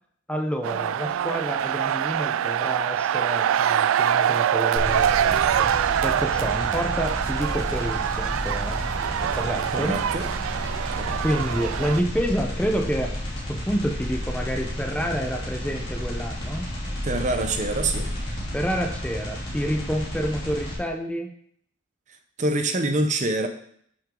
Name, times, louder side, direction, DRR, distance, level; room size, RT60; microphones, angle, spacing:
voice 1, 0.3-5.7 6.0-8.8 9.3-10.0 11.2-13.1 13.5-16.7 18.5-21.3, equal, 5° left, 3 dB, 0.8 m, -28 dB
sound 1, 0.6-12.0, right 9 dB, 90° right, 0.3 m, -24 dB
sound 2, 4.8-20.8, left 1 dB, 25° left, 3.2 m, -32 dB
voice 2, 9.7-10.3 10.9-11.2 17.0-18.1 22.4-23.5, right 2 dB, 35° right, 7 dB, 0.8 m, -25 dB
9.9 x 6.2 x 3.8 m, 0.64 s
head